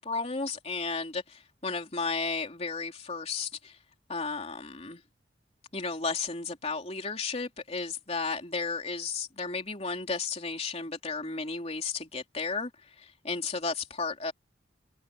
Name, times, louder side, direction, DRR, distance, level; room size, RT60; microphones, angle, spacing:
voice 1, 0.0-3.8 4.1-5.0 5.7-12.7 13.0-14.3, left 4 dB, 35° left, 3.5 m, -33 dB
head